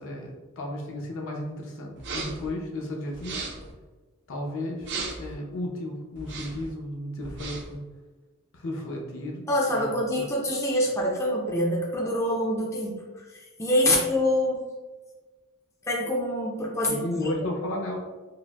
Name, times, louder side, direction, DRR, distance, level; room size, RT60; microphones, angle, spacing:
voice 1, 0.0-3.5 4.3-7.8 8.5-10.3 13.8-14.0 16.9-18.0, left 1 dB, 65° left, 0 dB, 0.6 m, -34 dB
sound 1, 2.0-2.5 3.1-3.7 4.8-5.3 6.2-6.7 7.2-7.8, right 3 dB, 55° right, 0.5 m, -36 dB
voice 2, 9.5-14.6 15.9-17.2, left 1 dB, 15° left, -3 dB, 0.4 m, -26 dB
4.7 x 2.0 x 2.2 m, 1.3 s
head